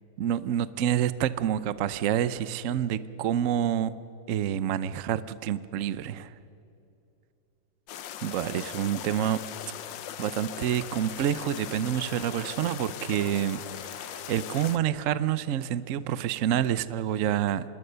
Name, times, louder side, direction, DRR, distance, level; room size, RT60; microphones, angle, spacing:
voice 1, 0.2-3.9 4.3-6.3 8.2-9.4 10.2-17.6, right 10 dB, 85° right, 15 dB, 0.7 m, -28 dB
sound 1, 7.9-14.8, left 10 dB, 65° left, 1.5 m, -39 dB
25.5 x 21.0 x 6.8 m, 2.8 s
omnidirectional pair, 2.3 m